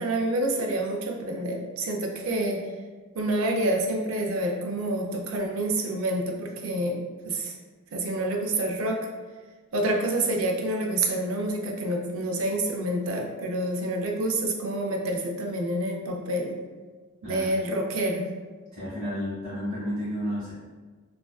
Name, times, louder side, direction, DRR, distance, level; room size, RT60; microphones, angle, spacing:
voice 1, 0.0-2.7 3.1-7.5 7.9-9.1 9.7-16.6 17.3-18.3, right 1 dB, 85° right, 1 dB, 0.4 m, -28 dB
voice 2, 18.7-20.5, equal, 30° right, -12 dB, 0.8 m, -31 dB
2.4 x 2.3 x 2.3 m, 1.4 s
head